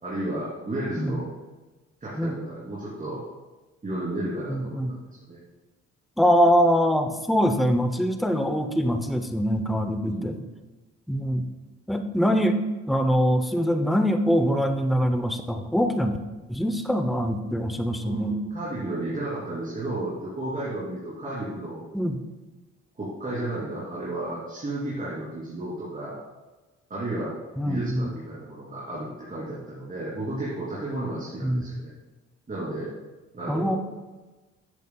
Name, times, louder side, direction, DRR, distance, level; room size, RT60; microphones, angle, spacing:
voice 1, 0.0-1.3 2.0-3.2 3.8-4.8 5.3-5.4 10.0-10.4 18.0-21.8 22.9-26.2 26.9-27.3 27.6-31.9 32.5-32.9 33.3-33.8, right 1 dB, 25° right, -9 dB, 2.9 m, -32 dB
voice 2, 4.5-4.9 6.2-10.4 11.1-11.5 11.9-12.6 12.9-16.2 16.5-18.4 21.9-22.2 27.6-28.1 31.4-31.7 33.5-33.8, equal, ahead, 7 dB, 0.7 m, -23 dB
11.0 x 8.2 x 2.3 m, 1.2 s
cardioid pair, 90°, 30 cm